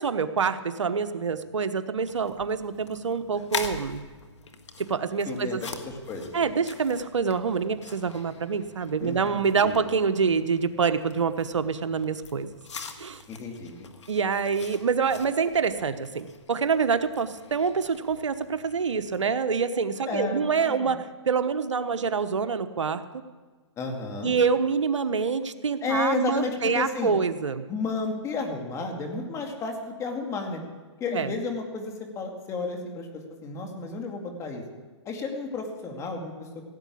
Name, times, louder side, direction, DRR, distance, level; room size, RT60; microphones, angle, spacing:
voice 1, 0.0-4.0 4.8-5.6 6.3-12.5 13.0-13.2 14.1-23.0 24.2-27.6 31.1-31.3, right 5 dB, 90° right, 11 dB, 1.1 m, -26 dB
sound 1, 2.0-19.4, left 5 dB, 75° left, 1.9 m, -43 dB
voice 2, 5.3-5.6 5.9-6.3 9.0-9.8 13.3-13.9 20.1-20.9 23.8-24.3 25.8-27.1 27.7-30.6 31.0-34.6 35.1-36.5, left 3 dB, 20° left, 3 dB, 2.4 m, -32 dB
17.0 x 8.4 x 8.6 m, 1.4 s
hypercardioid pair, 140°, 15 cm